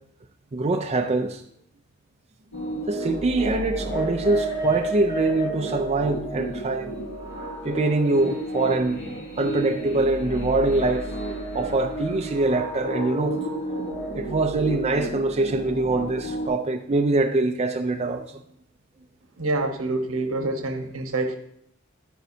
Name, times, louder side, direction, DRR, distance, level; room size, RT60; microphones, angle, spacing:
voice 1, 0.5-1.4 2.9-6.9 7.6-9.0 9.4-11.1 11.5-13.4 14.1-18.2, right 2 dB, 30° right, 0.5 m, -24 dB
sound 1, 2.5-16.5, right 1 dB, 60° left, 4.1 m, -31 dB
voice 2, 19.4-21.4, right 2 dB, 80° right, 1.1 m, -26 dB
10.5 x 9.1 x 2.7 m
head